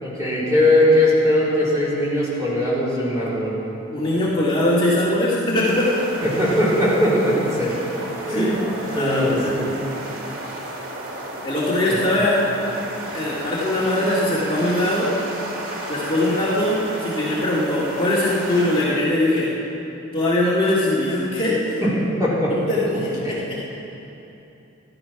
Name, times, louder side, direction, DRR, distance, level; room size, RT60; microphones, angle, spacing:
voice 1, 0.0-3.6 6.2-7.8 8.2-8.6 8.9-9.7 11.9-12.0 21.8-21.9 22.2-22.5 23.2-23.4, left 1 dB, 15° right, -8 dB, 3.7 m, -20 dB
voice 2, 3.9-5.9 8.3-9.6 11.4-12.4 13.1-15.1 15.9-19.5 20.1-21.8 22.7-23.4, left 1 dB, 25° left, -8 dB, 2.1 m, -21 dB
sound 1, 5.6-18.9, right 1 dB, 75° right, 2.2 m, -33 dB
15.0 x 11.5 x 5.9 m, 2.9 s
head